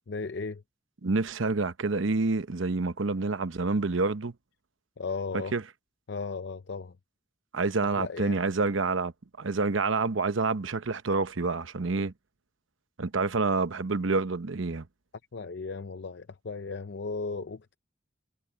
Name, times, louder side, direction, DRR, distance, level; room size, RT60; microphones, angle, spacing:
voice 1, 0.1-0.6 5.0-5.5 6.1-7.0 7.8-8.4 15.3-17.8, left 4 dB, 55° left, 0.6 m, -36 dB
voice 2, 1.0-4.3 5.5-5.6 7.5-9.1 9.4-12.1 13.0-14.9, right 3 dB, 75° right, 0.9 m, -28 dB
head